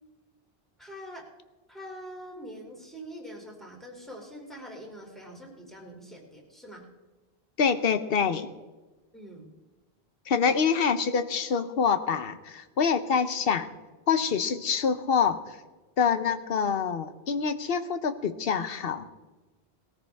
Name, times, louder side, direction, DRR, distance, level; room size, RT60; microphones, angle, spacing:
voice 1, 0.8-1.3 1.7-6.9 9.1-9.5, equal, ahead, -1 dB, 2.9 m, -44 dB
voice 2, 7.6-8.5 10.3-13.7 14.1-15.4 16.0-19.1, left 6 dB, 65° left, 10 dB, 1.1 m, -26 dB
19.5 x 14.0 x 3.5 m, 1.2 s
omnidirectional pair, 1.1 m